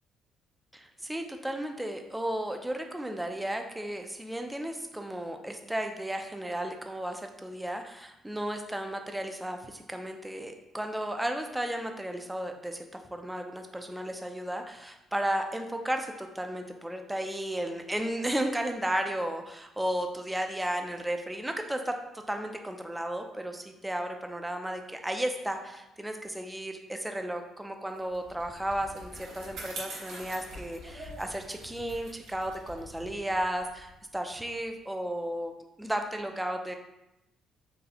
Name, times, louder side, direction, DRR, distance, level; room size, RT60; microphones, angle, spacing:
voice 1, 0.7-12.9 13.1-21.9 22.3-36.8, right 1 dB, 5° right, 5 dB, 0.3 m, -34 dB
Bicycle, 28.0-34.7, right 1 dB, 85° right, 1.2 m, -45 dB
3.9 x 3.3 x 2.8 m, 0.92 s
cardioid pair, 160°, 0 cm